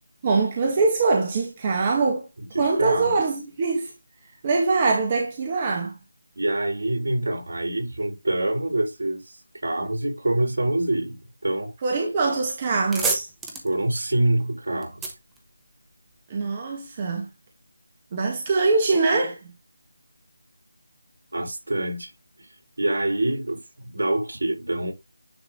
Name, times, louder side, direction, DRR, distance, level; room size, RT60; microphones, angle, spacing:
voice 1, 0.2-2.3 2.6-3.9 4.4-5.9 11.8-13.3 16.3-17.3 18.1-19.5, right 3 dB, 25° right, 1.5 m, -23 dB
voice 2, 2.4-3.2 6.4-9.4 9.6-11.7 13.6-15.1 21.3-22.1 22.4-22.5 22.8-24.9, right 1 dB, 65° right, 4.3 m, -26 dB
sound 1, 12.9-16.2, right 3 dB, 5° right, 1.2 m, -31 dB
10.0 x 3.5 x 3.7 m
figure-of-eight pair, 170°, 0 cm